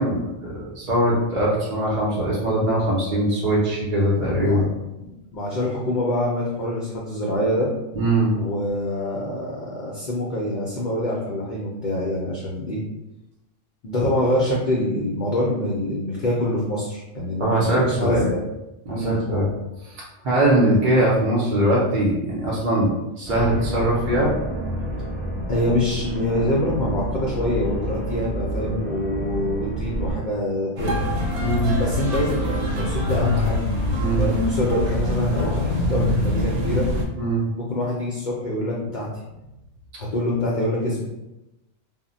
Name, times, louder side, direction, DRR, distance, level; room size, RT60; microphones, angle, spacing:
voice 1, 0.0-4.7 7.9-8.4 17.4-18.3 18.9-19.5 19.8-22.9 23.2-24.4 28.5-28.9 31.4-31.8 34.0-34.3 37.2-37.4, right 1 dB, 55° right, -6 dB, 0.7 m, -21 dB
voice 2, 5.3-7.7 8.3-12.8 13.8-18.4 18.9-19.2 25.5-30.9 31.8-33.6 34.2-36.9 37.5-39.1 40.0-41.2, left 1 dB, 60° left, -4 dB, 0.5 m, -25 dB
sound 1, 23.2-30.1, right 1 dB, ahead, 0.4 m, -29 dB
sound 2, 30.8-37.0, left 1 dB, 85° right, 1.0 m, -24 dB
2.1 x 2.0 x 3.7 m, 0.96 s
omnidirectional pair, 1.2 m